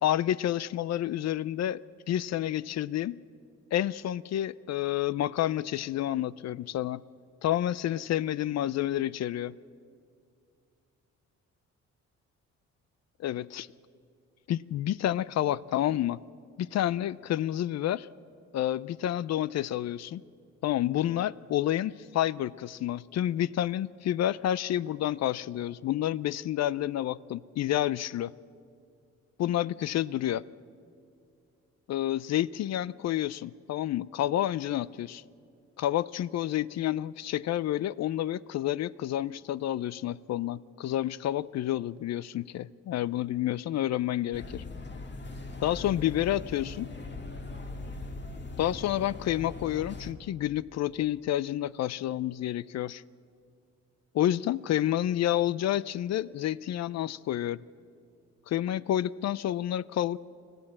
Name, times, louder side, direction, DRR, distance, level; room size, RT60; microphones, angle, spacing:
voice 1, 0.0-1.8 2.1-3.2 3.7-7.0 7.4-9.5 13.2-13.7 14.5-16.2 16.6-18.1 18.5-20.2 20.6-28.3 29.4-30.4 31.9-35.2 35.8-44.6 45.6-46.9 48.6-53.0 54.1-57.6 58.5-60.2, left 12 dB, 60° left, 20 dB, 0.5 m, -29 dB
sound 1, 44.3-50.1, left 3 dB, 35° left, 2.0 m, -40 dB
25.5 x 15.0 x 8.8 m, 2.3 s
cardioid pair, 90°, 30 cm